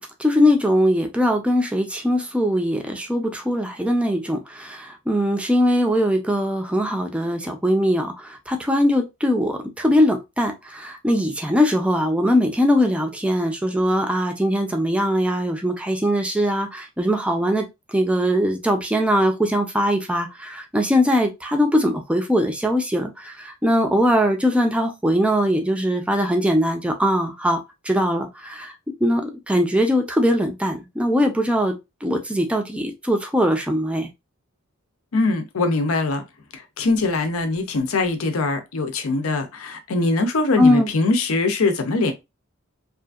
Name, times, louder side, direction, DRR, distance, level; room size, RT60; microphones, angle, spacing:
voice 1, 0.2-27.6 27.8-28.7 29.0-34.1 40.6-40.9, equal, 5° right, 0.4 m, -21 dB
voice 2, 35.1-36.2 36.5-42.1, left 3 dB, 75° left, 0.6 m, -22 dB
2.8 x 2.5 x 2.3 m
head